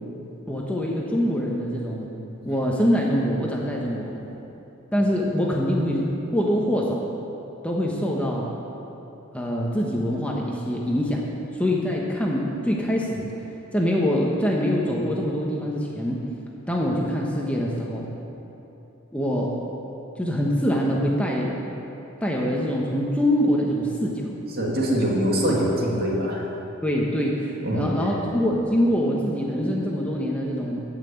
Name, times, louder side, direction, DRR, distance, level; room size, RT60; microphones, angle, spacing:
voice 1, 0.5-2.1 2.4-4.1 4.9-6.1 6.3-7.0 7.6-8.5 9.3-11.2 11.5-13.3 13.7-16.2 16.7-18.1 19.1-19.5 20.2-21.5 22.2-24.2 26.8-27.4 27.7-30.8, equal, 5° left, -2 dB, 1.1 m, -24 dB
voice 2, 24.5-26.5 27.6-28.1, equal, 50° right, -3 dB, 2.5 m, -24 dB
14.5 x 6.0 x 8.6 m, 3.0 s
head